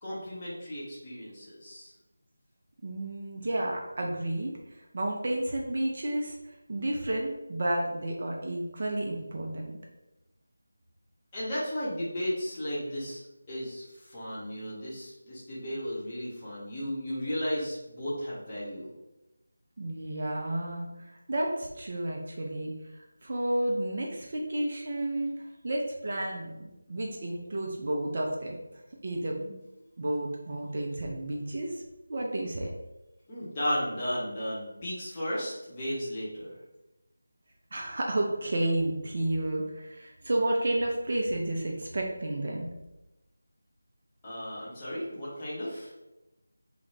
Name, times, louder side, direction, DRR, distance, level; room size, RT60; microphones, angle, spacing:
voice 1, 0.0-1.9 11.3-13.2 13.5-18.9 33.3-36.5 44.2-45.9, equal, 20° left, -9 dB, 0.7 m, -34 dB
voice 2, 2.8-4.5 4.9-6.4 6.7-9.7 19.8-25.3 25.6-28.6 29.0-29.5 30.0-31.8 32.1-32.7 37.7-42.7, right 1 dB, 40° right, 0 dB, 0.3 m, -31 dB
2.3 x 2.0 x 3.2 m, 0.98 s
figure-of-eight pair, 165°, 0 cm